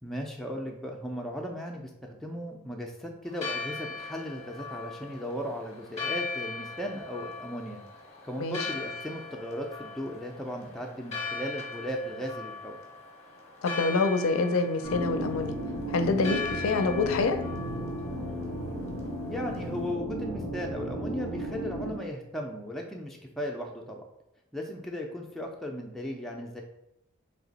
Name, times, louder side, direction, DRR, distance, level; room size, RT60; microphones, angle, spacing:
voice 1, 0.0-7.8 8.2-12.8 19.3-24.0 24.5-26.6, equal, ahead, 0 dB, 0.4 m, -36 dB
Church bell, 3.3-19.9, left 4 dB, 30° left, 0.7 m, -40 dB
voice 2, 8.4-8.7 13.6-15.6 15.9-17.4, left 3 dB, 75° left, 7 dB, 0.4 m, -26 dB
sound 1, 14.8-21.9, equal, 90° right, 1.3 m, -34 dB
3.3 x 2.8 x 4.0 m, 0.82 s
head